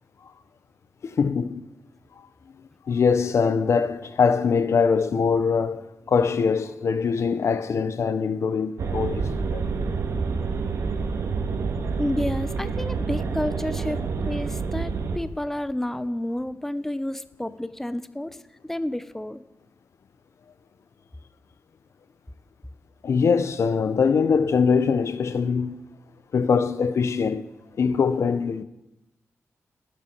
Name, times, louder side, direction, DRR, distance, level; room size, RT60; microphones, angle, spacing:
voice 1, 1.1-1.6 2.2-2.3 2.9-9.6 23.0-25.8 26.3-27.4 27.8-28.6, left 5 dB, 70° left, 0.9 m, -22 dB
sound 1, 8.8-15.2, right 4 dB, 80° right, 1.8 m, -28 dB
voice 2, 12.0-18.4 18.6-19.4, left 1 dB, 5° left, 0.7 m, -30 dB
29.5 x 10.0 x 4.6 m
wide cardioid pair, 105°, 5 cm